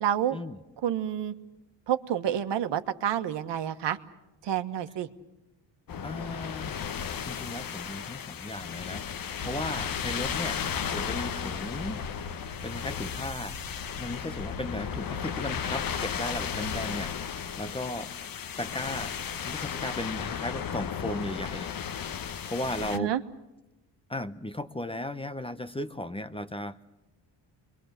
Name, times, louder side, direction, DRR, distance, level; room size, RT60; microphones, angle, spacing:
voice 1, 0.0-0.4 0.8-1.3 1.9-4.0 4.4-5.1 22.9-23.2, right 10 dB, 70° right, 8 dB, 1.5 m, -28 dB
sound 1, 5.9-23.0, left 8 dB, 50° left, 1.1 m, -35 dB
voice 2, 6.0-6.7 7.2-9.0 9.4-10.6 10.9-12.0 12.6-13.6 13.9-18.1 18.6-19.2 19.4-21.7 22.5-23.1 24.1-26.8, left 1 dB, 10° left, 12 dB, 0.8 m, -36 dB
sound 2, 9.4-17.1, left 3 dB, 90° left, 4.1 m, -42 dB
28.0 x 22.5 x 6.7 m, 0.99 s
cardioid pair, 110°, 44 cm